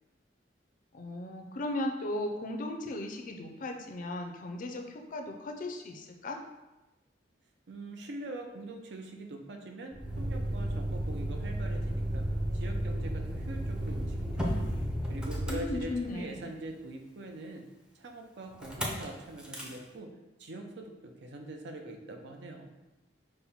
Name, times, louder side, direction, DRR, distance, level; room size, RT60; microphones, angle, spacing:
voice 1, 0.9-6.4 15.5-16.6, left 1 dB, 45° left, 3 dB, 0.5 m, -36 dB
voice 2, 7.7-12.3 12.5-14.4 15.1-17.6 17.9-20.1 20.4-22.7, right 2 dB, 65° right, 3 dB, 0.6 m, -43 dB
Motor vehicle (road), 9.9-16.4 18.6-19.0 19.4-19.8, equal, 5° right, 0.6 m, -33 dB
5.4 x 2.2 x 4.2 m, 1.0 s
head